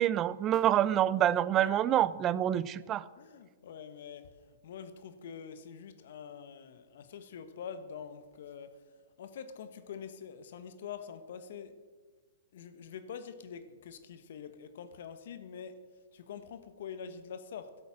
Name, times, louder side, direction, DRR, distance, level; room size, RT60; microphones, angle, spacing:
voice 1, 0.0-3.1, right 11 dB, 30° right, 18 dB, 0.5 m, -27 dB
voice 2, 1.6-2.0 3.2-8.9 9.2-11.7 12.5-17.8, left 7 dB, 65° left, 11 dB, 1.1 m, -45 dB
11.5 x 8.5 x 7.3 m, 1.4 s
hypercardioid pair, 125°, 0 cm